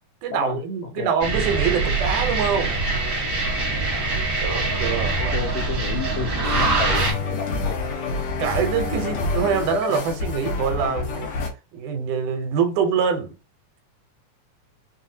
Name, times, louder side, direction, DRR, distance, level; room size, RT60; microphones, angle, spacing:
voice 1, 0.2-2.8 4.4-5.4 8.4-11.3 11.7-13.3, right 7 dB, 75° right, 2.1 m, -24 dB
sound 1, 1.2-7.1, right 3 dB, 50° right, 1.1 m, -24 dB
voice 2, 5.2-7.8, left 7 dB, 85° left, 1.6 m, -30 dB
sound 2, 6.4-11.5, left 4 dB, 65° left, 2.1 m, -27 dB
5.5 x 2.3 x 2.7 m
omnidirectional pair, 3.7 m